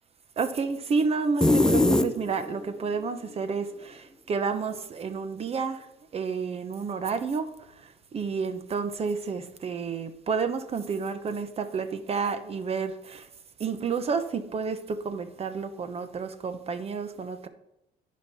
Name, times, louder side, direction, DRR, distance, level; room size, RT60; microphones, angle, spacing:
voice 1, 0.4-5.9 6.1-7.5 7.8-13.3 13.6-17.5, right 5 dB, 35° right, 9 dB, 1.0 m, -30 dB
sound 1, 1.4-2.6, left 2 dB, 5° left, 0.6 m, -21 dB
11.0 x 5.2 x 4.2 m, 0.85 s
cardioid pair, 110°, 17 cm